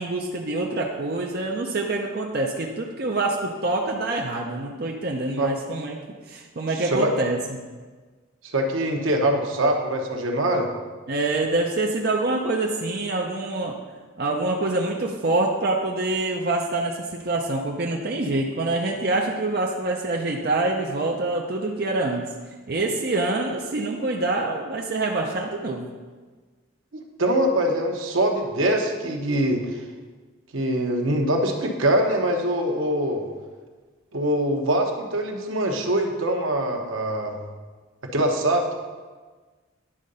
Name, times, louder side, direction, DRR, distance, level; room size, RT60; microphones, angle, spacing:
voice 1, 0.0-6.0 6.3-7.4 11.1-13.8 14.2-22.2 22.7-25.9, right 2 dB, 50° right, 0 dB, 0.6 m, -26 dB
voice 2, 6.7-7.1 8.5-10.7 26.9-29.8 30.5-33.3 34.1-37.4 38.1-38.7, right 1 dB, 80° right, 2 dB, 1.0 m, -23 dB
10.0 x 3.8 x 5.4 m, 1.4 s
head